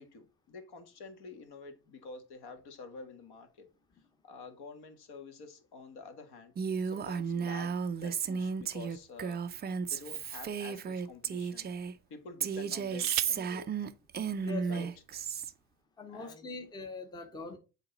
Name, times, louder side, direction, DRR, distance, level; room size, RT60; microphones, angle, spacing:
voice 1, 0.0-3.7 4.2-6.5 6.8-9.4 9.8-11.7 12.1-13.9 14.7-14.9 16.1-16.6, left 4 dB, 55° left, 1.7 m, -48 dB
Female speech woman speaking, 6.5-11.9 12.4-15.5, right 6 dB, 20° right, 0.4 m, -34 dB
sound 1, 8.7-10.0 10.7-10.8 12.5-13.5 14.7-14.8 15.1-15.5, right 21 dB, 70° right, 0.6 m, -40 dB
voice 2, 14.4-14.9 16.0-17.6, left 3 dB, 10° left, 0.8 m, -42 dB
6.9 x 4.1 x 4.0 m
supercardioid pair, 90°, 47 cm